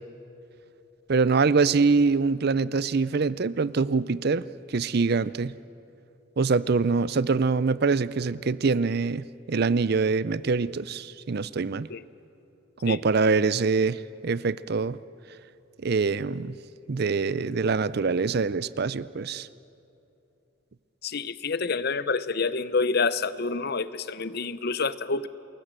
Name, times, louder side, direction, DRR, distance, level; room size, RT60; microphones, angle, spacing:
voice 1, 1.1-5.5 6.4-11.9 12.8-15.0 15.8-16.6 16.9-19.5, right 4 dB, 50° right, 18 dB, 0.5 m, -24 dB
voice 2, 21.0-25.3, left 4 dB, 50° left, 15 dB, 0.7 m, -27 dB
28.0 x 21.0 x 7.6 m, 2.8 s
head